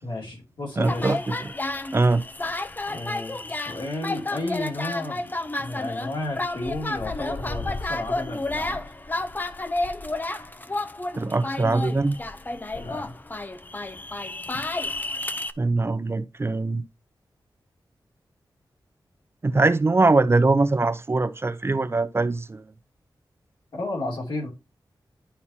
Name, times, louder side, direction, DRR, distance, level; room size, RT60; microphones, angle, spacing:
voice 1, 0.0-1.2 2.9-8.9 12.7-13.1 14.5-14.6 23.7-24.5, left 2 dB, 70° left, 2.8 m, -32 dB
sound 1, 0.8-15.5, left 2 dB, 20° left, 0.5 m, -31 dB
voice 2, 0.8-1.5 1.9-2.2 11.2-12.2 15.6-16.8 19.4-22.6, right 3 dB, 30° right, 0.5 m, -22 dB
11.0 x 4.2 x 2.8 m
wide cardioid pair, 85°, 8 cm